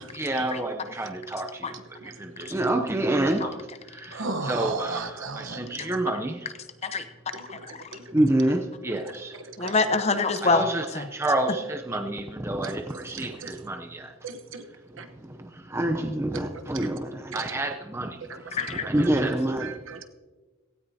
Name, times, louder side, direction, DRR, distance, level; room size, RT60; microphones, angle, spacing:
voice 1, 0.0-6.5 8.1-9.4 10.4-14.1 15.2-18.2 18.7-19.7, right 1 dB, 10° right, 5 dB, 0.6 m, -28 dB
voice 2, 1.7-2.5 4.1-5.9 7.3-8.2 8.9-9.0 9.3-9.7 12.6-13.6 14.2-14.7 15.0-15.1 16.3-16.9 17.3-17.6 18.2-19.1 19.6-20.0, right 3 dB, 65° right, 7 dB, 1.0 m, -37 dB
voice 3, 7.5-7.9 9.6-11.1 18.5-18.8, left 4 dB, 30° left, 9 dB, 0.7 m, -26 dB
17.5 x 16.5 x 2.8 m, 1.3 s
head